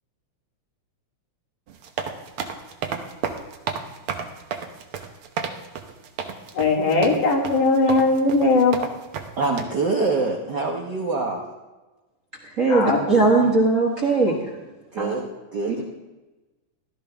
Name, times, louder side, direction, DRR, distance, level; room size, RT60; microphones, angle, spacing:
sound 1, 1.7-9.6, right 6 dB, 65° right, 1.4 m, -31 dB
voice 1, 6.5-8.8 12.7-13.3, left 3 dB, 85° left, -1 dB, 3.6 m, -20 dB
voice 2, 9.4-11.4 14.9-15.2 15.5-15.9, right 3 dB, 85° right, 1 dB, 0.9 m, -25 dB
voice 3, 12.6-14.4 15.0-15.1 15.7-15.9, right 3 dB, 45° right, -1 dB, 1.1 m, -19 dB
16.5 x 12.5 x 3.4 m, 1.2 s
omnidirectional pair, 3.5 m